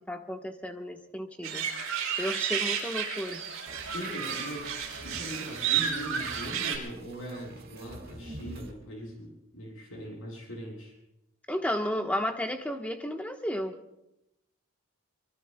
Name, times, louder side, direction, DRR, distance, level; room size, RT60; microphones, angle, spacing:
voice 1, 0.1-1.7 2.2-3.4 11.5-13.7, equal, 5° left, 3 dB, 1.2 m, -33 dB
sound 1, 1.4-6.8, right 8 dB, 70° right, 5.7 m, -32 dB
sound 2, 3.7-8.7, right 1 dB, 45° right, 1.7 m, -47 dB
voice 2, 3.9-10.9, equal, 70° left, -3 dB, 7.9 m, -41 dB
25.5 x 24.0 x 2.3 m, 0.89 s
head